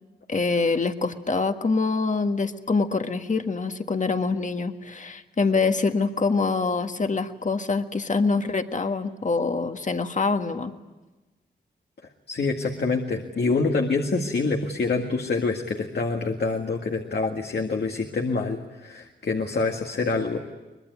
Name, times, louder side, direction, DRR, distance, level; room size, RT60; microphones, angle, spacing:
voice 1, 0.3-10.7, left 4 dB, 45° left, 7 dB, 1.7 m, -25 dB
voice 2, 12.3-20.4, left 3 dB, 70° left, 2 dB, 1.9 m, -26 dB
24.0 x 21.0 x 9.5 m, 1.2 s
cardioid pair, 60°, 18 cm